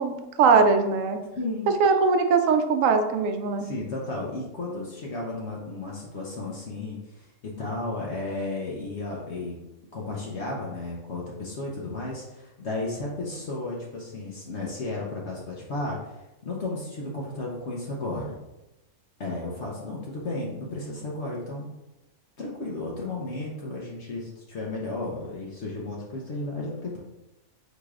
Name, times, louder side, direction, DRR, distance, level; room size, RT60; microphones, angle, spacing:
voice 1, 0.0-1.2 1.8-3.6, right 5 dB, 70° right, 7 dB, 0.9 m, -21 dB
voice 2, 1.4-1.7 3.6-9.5 9.9-18.4 19.2-21.7 22.4-27.0, left 2 dB, 60° left, -3 dB, 1.0 m, -33 dB
4.8 x 3.9 x 2.4 m, 0.96 s
omnidirectional pair, 1.5 m